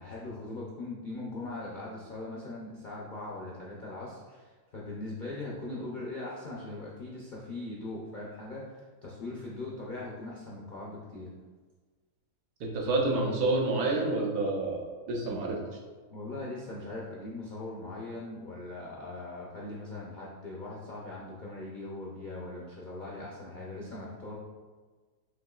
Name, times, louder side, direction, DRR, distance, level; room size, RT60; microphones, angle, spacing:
voice 1, 0.0-11.3 16.1-24.3, left 2 dB, 85° left, -4 dB, 0.4 m, -40 dB
voice 2, 12.6-15.6, right 2 dB, 85° right, 0 dB, 1.3 m, -28 dB
5.9 x 2.9 x 2.3 m, 1.4 s
omnidirectional pair, 1.7 m